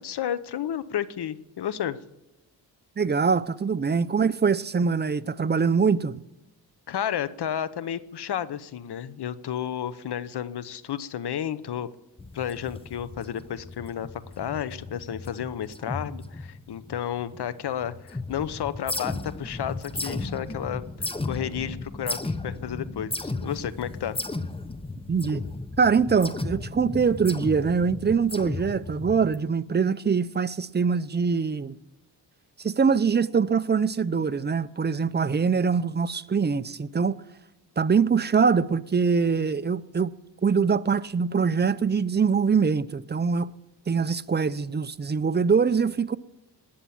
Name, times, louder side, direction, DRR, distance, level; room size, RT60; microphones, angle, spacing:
voice 1, 0.0-2.0 6.9-11.9 12.3-14.1 14.4-24.2, left 9 dB, 65° left, 0.9 m, -32 dB
voice 2, 3.0-6.2 25.1-25.4 25.8-31.7 32.6-37.2 37.8-40.1 40.4-43.5 43.9-46.2, right 5 dB, 25° right, 0.6 m, -23 dB
sound 1, 12.2-17.4 17.7-29.4, left 2 dB, 15° left, 0.9 m, -35 dB
20.0 x 7.3 x 7.2 m
cardioid pair, 85°, 42 cm